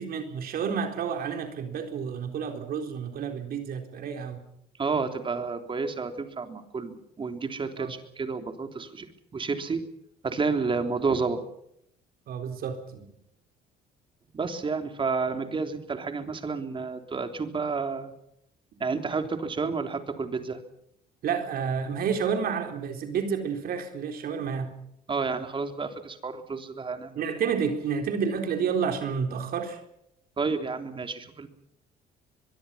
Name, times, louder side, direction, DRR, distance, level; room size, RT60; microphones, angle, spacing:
voice 1, 0.0-4.4 7.8-7.9 12.3-13.0 21.2-24.7 27.2-29.8, right 6 dB, 65° right, 5 dB, 3.9 m, -30 dB
voice 2, 4.8-9.8 10.2-11.4 14.3-18.1 18.8-20.6 25.1-27.2 30.4-31.5, right 4 dB, 30° right, 6 dB, 3.4 m, -30 dB
23.5 x 23.0 x 5.8 m, 0.75 s
cardioid pair, 110°, 17 cm